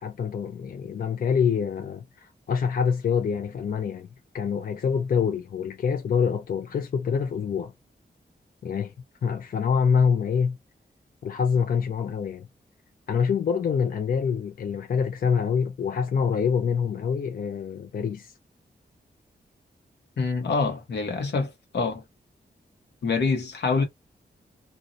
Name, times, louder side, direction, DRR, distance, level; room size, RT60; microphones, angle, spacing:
voice 1, 0.0-4.1 4.3-7.7 8.6-8.9 9.2-10.6 11.2-12.5 13.1-18.3, left 6 dB, 55° left, 0.4 m, -26 dB
voice 2, 20.2-22.0 23.0-23.8, left 4 dB, 80° left, 0.9 m, -26 dB
2.5 x 2.0 x 2.6 m
wide cardioid pair, 95°, 18 cm